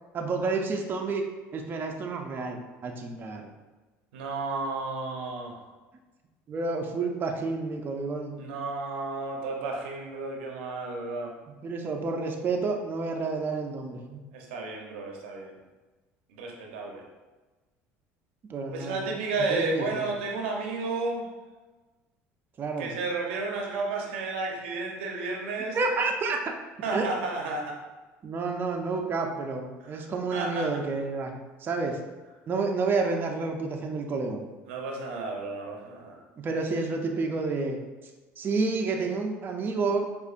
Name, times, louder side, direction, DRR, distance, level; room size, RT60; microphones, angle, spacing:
voice 1, 0.1-1.2 1.5-3.5 6.5-8.4 11.5-14.2 18.5-19.0 19.5-20.1 22.6-22.9 25.7-26.4 26.9-27.1 28.2-32.0 32.5-34.5 36.4-37.8 38.4-40.1, right 3 dB, 35° right, 2 dB, 0.5 m, -30 dB
voice 2, 4.1-5.6 8.4-11.3 14.3-15.5 16.3-17.0 18.7-21.3 22.8-25.8 26.8-27.8 30.3-30.7 34.7-36.2, right 3 dB, 90° right, 1 dB, 0.6 m, -32 dB
4.8 x 2.4 x 2.4 m, 1.2 s
supercardioid pair, 95°, 6 cm